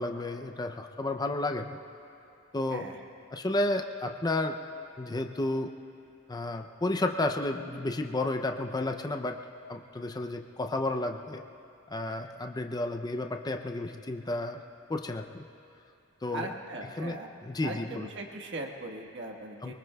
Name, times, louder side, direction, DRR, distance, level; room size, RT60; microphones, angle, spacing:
voice 1, 0.0-1.8 2.5-2.9 3.3-4.6 5.0-5.7 6.3-9.4 9.7-11.4 11.9-14.6 14.9-15.4 16.2-16.5 17.0-18.1 19.6-19.7, left 2 dB, 20° left, 5 dB, 0.5 m, -32 dB
voice 2, 2.7-3.0 16.3-17.3 17.6-19.7, right 2 dB, 60° right, 1 dB, 1.4 m, -39 dB
23.5 x 23.5 x 2.3 m, 2.7 s
head